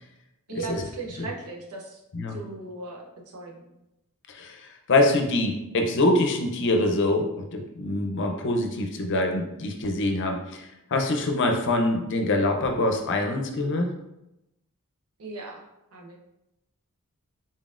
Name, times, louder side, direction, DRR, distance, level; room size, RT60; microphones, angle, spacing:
voice 1, 0.5-2.0 2.3-3.7 15.2-16.2, right 3 dB, 85° right, 0 dB, 0.8 m, -38 dB
voice 2, 4.3-13.9, left 2 dB, 55° left, 4 dB, 0.6 m, -24 dB
4.1 x 3.8 x 2.5 m, 0.90 s
head